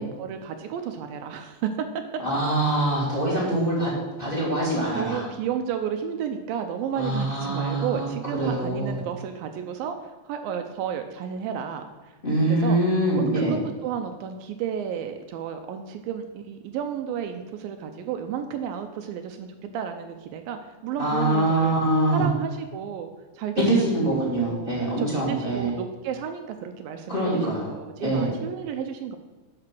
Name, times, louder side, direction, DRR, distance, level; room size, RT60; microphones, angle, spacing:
voice 1, 0.0-1.7 3.3-3.4 4.9-12.1 12.4-12.8 13.2-21.8 22.1-23.1 23.4-23.9 24.4-29.2, right 8 dB, 80° right, 6 dB, 2.3 m, -32 dB
voice 2, 2.2-3.9 4.2-5.3 7.0-9.0 12.2-13.6 21.0-22.2 23.7-25.7 27.1-27.7 28.0-28.3, right 1 dB, 15° left, -5 dB, 2.5 m, -24 dB
8.8 x 5.9 x 6.1 m, 1.2 s
omnidirectional pair, 4.3 m